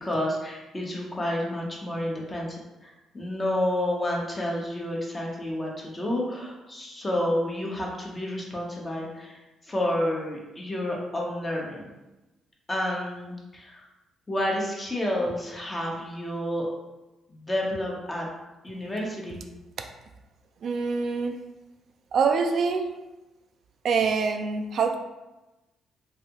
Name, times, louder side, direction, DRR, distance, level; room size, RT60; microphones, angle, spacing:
voice 1, 0.0-11.9 12.7-13.8 14.3-16.7 17.3-18.3 18.6-19.4, left 1 dB, 25° left, -2 dB, 0.8 m, -30 dB
voice 2, 20.6-21.4 22.1-22.9 23.8-24.9, right 5 dB, 60° right, 5 dB, 0.3 m, -25 dB
3.2 x 2.6 x 2.9 m, 1.0 s
cardioid pair, 90°, 0 cm